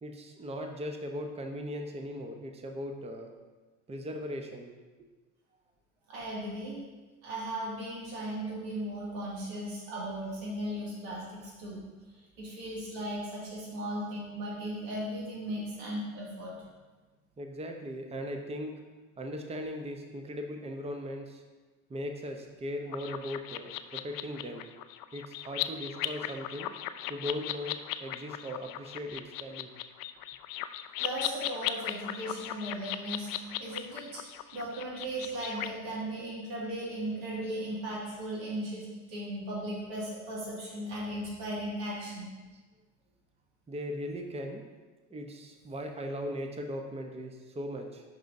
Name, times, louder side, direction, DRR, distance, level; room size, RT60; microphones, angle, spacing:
voice 1, 0.0-3.3 3.9-4.7 17.4-18.8 19.2-21.4 21.9-24.7 25.1-26.7 27.1-29.7 43.7-44.6 45.1-48.0, equal, 15° right, 4 dB, 0.8 m, -38 dB
voice 2, 6.1-6.8 7.2-11.8 12.1-16.5 31.0-34.2 34.5-42.3, right 1 dB, 75° right, -6 dB, 2.2 m, -37 dB
sound 1, 22.9-35.7, left 12 dB, 55° left, 0.5 m, -37 dB
11.0 x 4.7 x 2.6 m, 1.3 s
hypercardioid pair, 65°, 42 cm